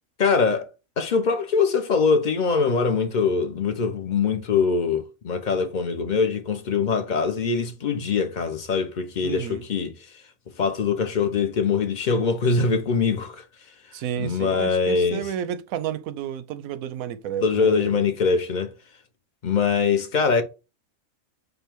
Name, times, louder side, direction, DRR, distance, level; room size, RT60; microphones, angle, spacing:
voice 1, 0.2-0.7 1.0-9.9 10.6-13.4 14.2-15.2 17.4-18.7 19.4-20.4, left 5 dB, 50° left, 0.6 m, -23 dB
voice 2, 9.2-9.7 13.9-18.0, right 9 dB, 90° right, 1.0 m, -31 dB
5.2 x 2.2 x 4.4 m
omnidirectional pair, 1.4 m